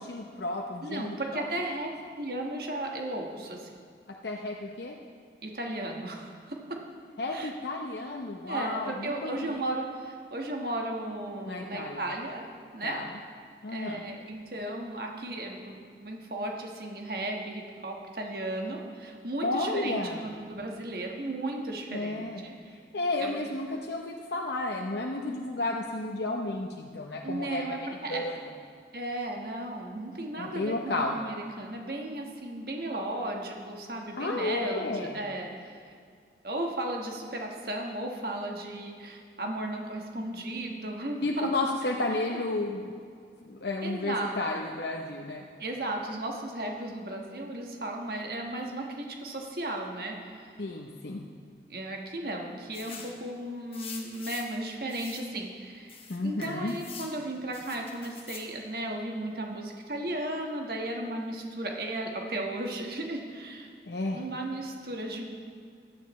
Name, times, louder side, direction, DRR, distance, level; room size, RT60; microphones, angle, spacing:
voice 1, 0.0-1.4 4.2-4.9 7.2-9.6 11.5-12.0 12.8-13.1 13.6-14.0 19.4-20.3 21.9-22.4 22.7-27.8 28.1-28.4 30.4-31.2 34.2-35.2 41.2-42.9 43.4-45.4 50.6-51.3 56.1-56.7 63.9-64.2, left 2 dB, 75° left, 0 dB, 0.7 m, -32 dB
voice 2, 0.8-3.7 5.4-6.8 7.3-7.5 8.5-12.5 12.7-13.0 13.7-22.5 23.2-23.5 27.2-28.2 28.9-35.9 36.4-41.5 43.8-44.6 45.6-50.6 51.7-63.7 64.1-65.2, right 1 dB, 60° right, 1 dB, 1.4 m, -35 dB
sound 1, 52.7-53.2 53.7-54.6 54.9-55.3 55.9-57.1 57.5-58.5, left 6 dB, 35° left, 1.2 m, -44 dB
16.5 x 11.5 x 3.1 m, 2.2 s
head